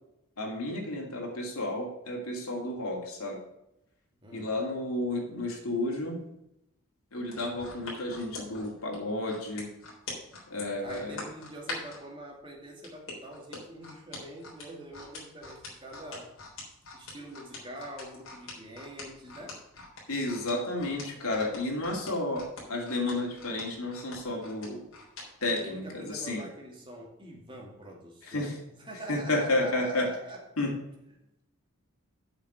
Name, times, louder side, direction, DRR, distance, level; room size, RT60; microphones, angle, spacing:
voice 1, 0.4-3.4 4.3-6.1 7.1-9.7 10.5-11.2 20.1-24.8 25.4-26.4 28.3-28.5 29.1-30.1 30.6-30.7, left 2 dB, 80° left, -1 dB, 2.8 m, -31 dB
sound 1, 7.3-12.0 12.8-25.6 26.1-26.2, left 3 dB, 65° left, 3.6 m, -43 dB
voice 2, 10.8-16.3 16.9-19.6 25.6-30.4, right 1 dB, 20° right, -1 dB, 2.2 m, -45 dB
7.9 x 5.6 x 6.8 m, 0.85 s
head